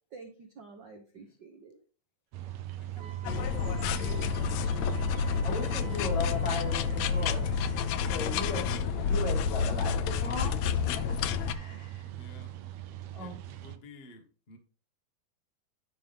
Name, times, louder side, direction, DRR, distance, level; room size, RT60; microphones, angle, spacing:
voice 1, 0.1-1.8 2.9-5.0, right 4 dB, 90° right, 0.9 m, -49 dB
sound 1, 2.3-13.8, right 13 dB, 70° right, 1.7 m, -40 dB
voice 2, 2.8-3.3 6.0-6.4 12.2-12.6 13.1-14.6, left 2 dB, 70° left, 0.5 m, -54 dB
Wind instrument woodwind instrument, 3.0-7.8, right 6 dB, 30° right, 1.8 m, -51 dB
sound 2, 3.2-11.5, left 7 dB, 90° left, 1.6 m, -29 dB
voice 3, 5.4-7.5 8.0-10.6 11.0-12.1 13.1-13.3, left 2 dB, 55° left, 5.8 m, -37 dB
11.5 x 5.6 x 3.5 m
omnidirectional pair, 3.8 m